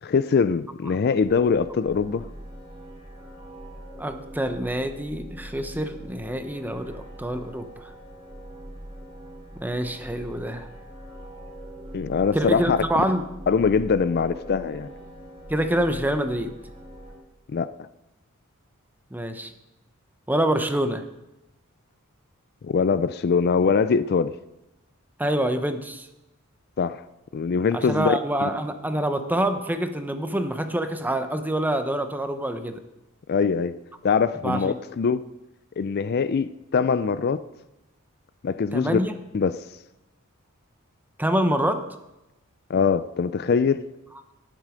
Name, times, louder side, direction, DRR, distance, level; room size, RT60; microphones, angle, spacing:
voice 1, 0.0-2.3 11.9-13.0 13.5-14.9 17.5-17.7 22.6-24.3 26.8-27.0 27.3-28.2 33.3-33.7 34.0-35.2 35.8-37.4 38.4-39.0 39.3-39.6 42.7-43.8, left 5 dB, 45° left, 0.4 m, -22 dB
sound 1, 1.2-17.2, equal, 25° right, 3.2 m, -42 dB
voice 2, 4.0-7.9 9.6-10.7 12.3-13.3 15.5-16.5 19.1-19.5 20.3-21.0 25.2-26.1 27.7-32.8 34.4-34.8 38.7-39.1 41.2-41.8, right 1 dB, 10° right, 0.8 m, -26 dB
18.5 x 7.5 x 5.1 m
head